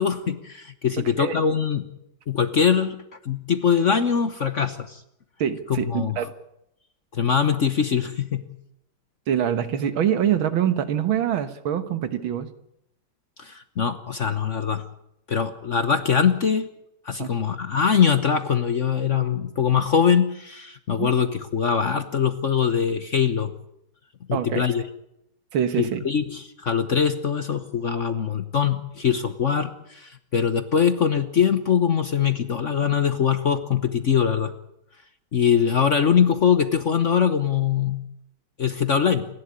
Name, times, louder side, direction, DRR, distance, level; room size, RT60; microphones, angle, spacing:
voice 1, 0.0-1.9 2.3-3.0 3.2-5.0 5.7-6.2 7.1-8.5 13.4-14.8 15.3-16.7 17.0-23.5 24.3-24.8 25.8-34.5 35.3-38.0 38.6-39.3, left 7 dB, 45° left, 10 dB, 1.1 m, -22 dB
voice 2, 1.0-1.4 5.4-6.3 9.3-12.5 17.2-17.3 21.0-21.1 24.3-24.7 25.5-26.0, right 9 dB, 75° right, 11 dB, 2.1 m, -24 dB
27.5 x 11.5 x 9.7 m, 0.79 s
omnidirectional pair, 2.2 m